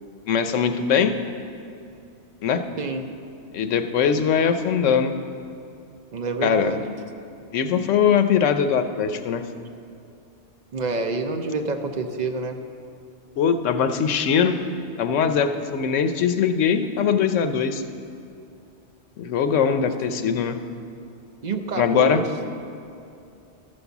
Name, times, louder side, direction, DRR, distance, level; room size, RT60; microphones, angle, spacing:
voice 1, 0.3-1.1 2.4-2.6 3.5-5.1 6.4-6.7 7.5-9.4 13.4-14.5 15.0-17.8 19.2-20.6 21.8-22.2, left 7 dB, 90° left, 8 dB, 1.0 m, -21 dB
voice 2, 2.8-3.1 6.1-6.8 10.7-12.6 19.8-20.0 21.4-22.3, right 3 dB, 45° right, 5 dB, 0.6 m, -27 dB
12.5 x 5.3 x 7.0 m, 2.5 s
omnidirectional pair, 1.2 m